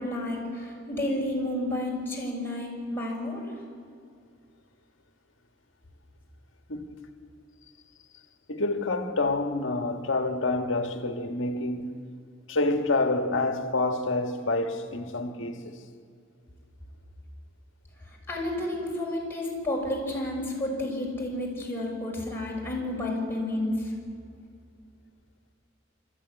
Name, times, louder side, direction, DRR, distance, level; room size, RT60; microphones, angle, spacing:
voice 1, 0.0-3.5 18.1-23.9, left 1 dB, 10° left, 6.3 m, -31 dB
voice 2, 8.5-11.9 12.5-15.8, left 2 dB, 80° left, 1.7 m, -28 dB
26.0 x 14.0 x 9.8 m
head